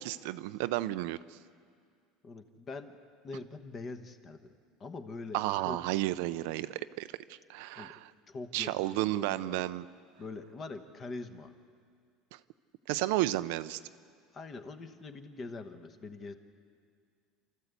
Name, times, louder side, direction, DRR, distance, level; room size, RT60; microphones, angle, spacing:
voice 1, 0.0-1.4 5.3-8.1 8.5-9.9 12.3-12.4 12.9-13.8, right 16 dB, 65° right, 13 dB, 0.5 m, -32 dB
voice 2, 2.2-3.0 3.2-4.5 4.8-5.8 7.8-8.0 8.3-9.6 10.2-11.5 14.3-16.3, left 3 dB, 20° left, 8 dB, 1.1 m, -43 dB
29.0 x 14.0 x 8.2 m, 2.1 s
cardioid pair, 180°, 0 cm